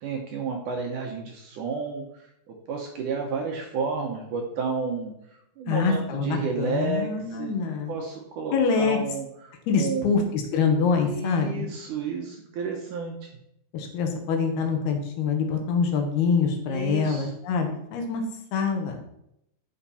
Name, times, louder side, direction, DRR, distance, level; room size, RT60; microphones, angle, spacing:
voice 1, 0.0-5.1 5.6-7.5 7.9-10.2 11.0-13.3 16.7-17.3, right 5 dB, 65° right, 1 dB, 2.1 m, -31 dB
voice 2, 5.7-7.9 8.5-9.0 9.7-11.7 13.7-18.2 18.5-19.0, left 5 dB, 75° left, 4 dB, 3.1 m, -25 dB
11.5 x 5.7 x 4.2 m, 0.77 s
omnidirectional pair, 4.6 m